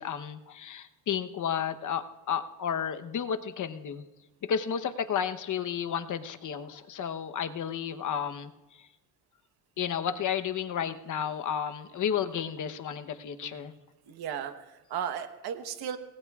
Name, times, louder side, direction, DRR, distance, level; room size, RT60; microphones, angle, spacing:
voice 1, 0.0-4.0 4.4-8.5 9.8-13.7, left 8 dB, 55° left, 8 dB, 1.0 m, -32 dB
voice 2, 14.1-16.0, right 8 dB, 85° right, 9 dB, 1.2 m, -36 dB
26.5 x 19.5 x 2.4 m, 1.1 s
cardioid pair, 110°, 37 cm